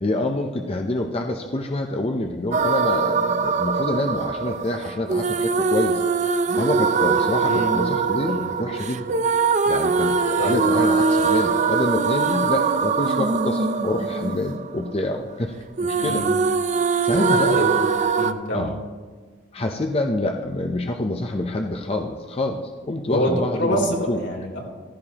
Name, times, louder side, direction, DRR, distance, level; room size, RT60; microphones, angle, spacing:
voice 1, 0.0-6.0 6.6-9.2 9.7-15.5 15.8-16.2 17.0-17.6 18.5-18.8 19.5-24.2, left 2 dB, 30° left, 3 dB, 0.7 m, -26 dB
sound 1, 2.5-15.5 15.8-18.3, right 5 dB, 40° right, 0.5 m, -22 dB
voice 2, 7.5-7.8 8.2-8.5 10.4-10.6 15.9-16.3 17.5-17.8 18.1-18.7 23.1-24.6, equal, 85° left, -2 dB, 3.6 m, -26 dB
15.5 x 14.5 x 2.9 m, 1.4 s
head